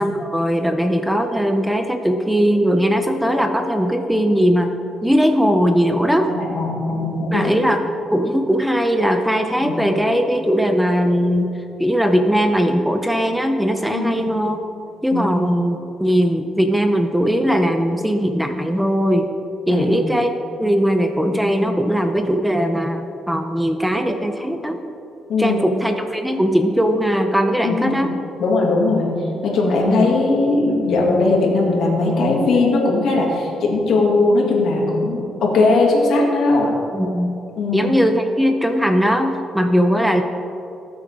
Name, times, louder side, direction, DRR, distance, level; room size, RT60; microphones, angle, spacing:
voice 1, 0.0-6.3 7.3-7.8 8.1-11.5 11.8-14.6 15.0-19.3 19.7-24.8 25.4-28.1 29.9-30.1 36.9-37.4 37.7-40.2, equal, 5° right, 6 dB, 0.7 m, -19 dB
voice 2, 6.3-7.4 9.6-9.8 13.9-14.3 15.1-15.5 19.7-19.9 25.3-25.7 27.6-28.1 28.4-29.1 29.4-36.7 37.6-37.9, left 3 dB, 70° left, -2 dB, 2.5 m, -19 dB
19.0 x 7.7 x 3.7 m, 2.8 s
cardioid pair, 110°, 0 cm